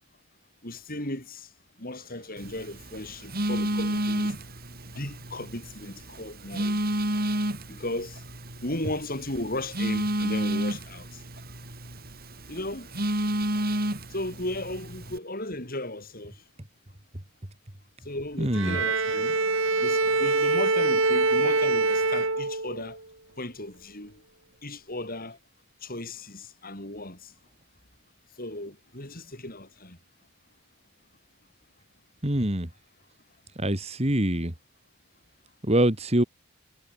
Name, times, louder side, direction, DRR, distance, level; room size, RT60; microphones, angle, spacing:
voice 1, 0.6-1.5 1.8-4.3 4.9-6.8 7.7-8.2 8.6-11.2 12.5-12.9 14.1-16.4 18.0-19.4 19.8-23.0 23.4-24.2 24.6-25.4 25.8-27.3 28.4-30.0, left 1 dB, 40° left, 7.9 m, -36 dB
Telephone, 2.4-15.2, right 1 dB, 45° right, 6.9 m, -31 dB
voice 2, 18.4-18.8 32.2-32.7 33.6-34.5 35.7-36.2, right 1 dB, 30° right, 2.3 m, -24 dB
Bowed string instrument, 18.5-23.0, right 3 dB, 60° right, 5.3 m, -24 dB
head